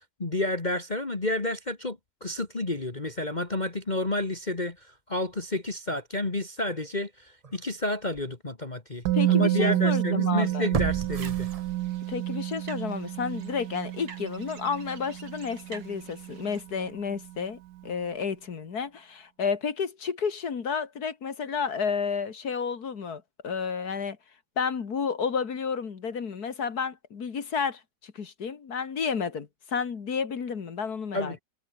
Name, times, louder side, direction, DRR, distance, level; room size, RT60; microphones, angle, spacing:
voice 1, 0.0-11.5 31.1-31.4, left 2 dB, 25° left, 2.1 m, -30 dB
sound 1, 7.4-7.6 8.1-8.2 10.7-12.2 12.5-12.6, right 5 dB, 35° right, 0.6 m, -33 dB
Musical instrument, 9.0-16.9 17.2-17.4, right 15 dB, 70° right, 1.1 m, -29 dB
voice 2, 9.1-10.7 12.1-24.2 24.6-31.4, left 6 dB, 60° left, 2.3 m, -31 dB
sound 2, 10.9-16.6, right 6 dB, 90° right, 2.9 m, -50 dB
omnidirectional pair, 1.9 m